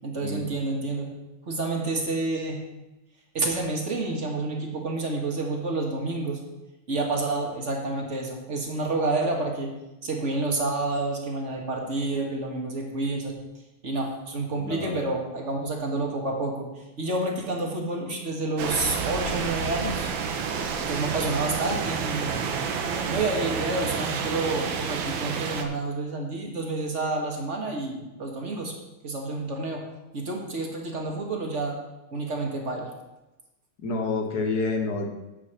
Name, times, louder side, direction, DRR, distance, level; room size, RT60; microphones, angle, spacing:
voice 1, 0.0-1.1 1.4-2.7 3.3-6.4 6.9-9.7 10.0-13.3 13.8-20.1 20.8-22.4 23.1-28.7 29.0-29.8 30.1-31.8 32.1-32.9, right 2 dB, 40° right, 1 dB, 1.6 m, -29 dB
voice 2, 14.5-15.1 33.8-35.1, left 3 dB, 55° left, 3 dB, 1.8 m, -28 dB
sound 1, 18.6-25.6, right 6 dB, 90° right, 1.7 m, -29 dB
9.0 x 4.7 x 7.4 m, 1.0 s
omnidirectional pair, 2.1 m